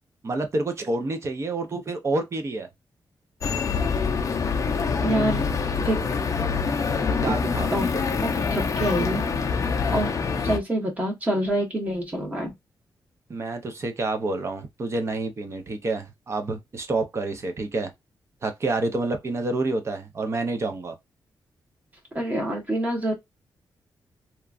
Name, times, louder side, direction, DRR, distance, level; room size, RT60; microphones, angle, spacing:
voice 1, 0.2-2.7 7.2-7.7 13.3-17.9 18.4-21.0, right 2 dB, 35° right, 0.6 m, -28 dB
sound 1, 3.4-10.6, left 5 dB, 40° left, 0.5 m, -25 dB
voice 2, 5.0-5.4 5.8-6.0 7.7-7.9 8.2-9.2 9.9-10.1 10.4-12.5 22.1-23.1, right 1 dB, 20° right, 1.1 m, -26 dB
2.9 x 2.3 x 2.4 m
wide cardioid pair, 160°, 8 cm